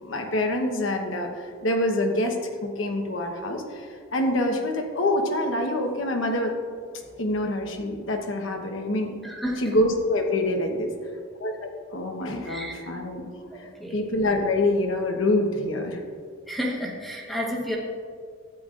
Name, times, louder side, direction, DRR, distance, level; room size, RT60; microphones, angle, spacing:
voice 1, 0.0-2.4 2.6-3.9 4.1-6.5 7.2-9.1 9.6-10.9 11.4-11.5 11.9-13.2 13.9-16.0, left 1 dB, 75° left, 3 dB, 1.1 m, -25 dB
voice 2, 9.2-9.8 12.4-12.9 13.5-14.0 16.5-17.8, equal, ahead, -3 dB, 1.0 m, -31 dB
13.0 x 9.1 x 2.5 m, 2.1 s
head